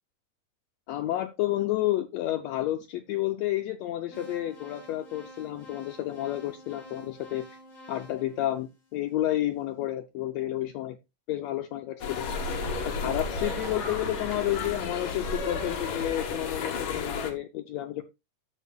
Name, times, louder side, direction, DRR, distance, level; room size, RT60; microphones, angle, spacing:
voice 1, 0.9-7.4 7.9-11.0 11.3-12.3 12.8-18.1, left 14 dB, 85° left, 5 dB, 1.5 m, -30 dB
sound 1, 4.1-9.2, equal, 50° left, 5.0 m, -49 dB
sound 2, 12.0-17.3, left 6 dB, 70° left, 1.2 m, -33 dB
sound 3, 12.2-17.4, right 1 dB, 85° right, 3.4 m, -39 dB
11.0 x 7.1 x 2.3 m, 0.23 s
omnidirectional pair, 3.7 m